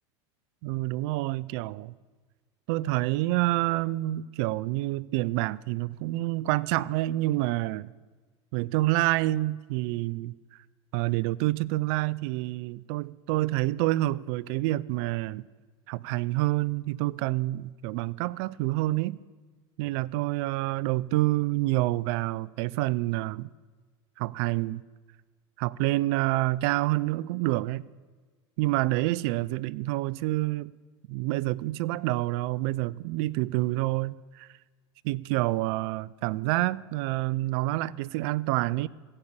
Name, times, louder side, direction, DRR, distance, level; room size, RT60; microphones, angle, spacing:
voice 1, 0.6-1.9 2.7-7.9 8.5-10.3 10.9-15.5 15.9-19.2 19.8-23.5 24.2-24.8 25.6-27.8 28.6-30.7 31.1-34.5 35.0-38.9, right 18 dB, 60° right, 0.4 m, -28 dB
15.5 x 5.4 x 8.6 m
hypercardioid pair, 105°, 15 cm